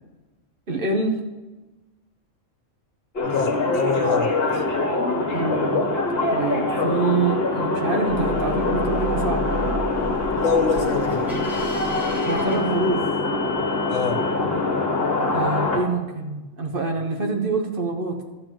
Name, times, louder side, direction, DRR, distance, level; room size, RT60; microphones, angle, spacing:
voice 1, 0.7-1.2 5.3-5.9 6.3-9.7 12.2-13.1 15.3-18.2, right 3 dB, 45° right, 3 dB, 1.1 m, -25 dB
voice 2, 3.2-4.6 10.3-11.4 13.9-14.2, left 5 dB, 70° left, 7 dB, 1.2 m, -25 dB
sound 1, 3.2-15.8, left 3 dB, 50° left, 1.6 m, -24 dB
sound 2, 8.1-13.4, right 1 dB, ahead, 1.6 m, -34 dB
12.0 x 4.7 x 7.4 m, 1.1 s
omnidirectional pair, 1.4 m